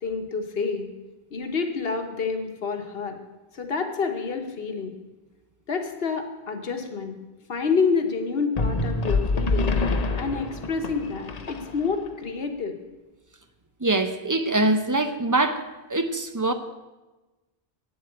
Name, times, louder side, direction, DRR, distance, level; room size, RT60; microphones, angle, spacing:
voice 1, 0.0-0.9 1.3-3.2 3.5-4.9 5.7-7.1 7.5-9.7 10.2-12.7, left 5 dB, 65° left, 6 dB, 1.4 m, -28 dB
sound 1, 8.6-12.1, left 3 dB, 45° left, 0.8 m, -26 dB
voice 2, 13.8-15.6 15.9-16.5, right 2 dB, 20° right, 9 dB, 0.6 m, -23 dB
8.5 x 7.9 x 8.1 m, 1.1 s
omnidirectional pair, 1.1 m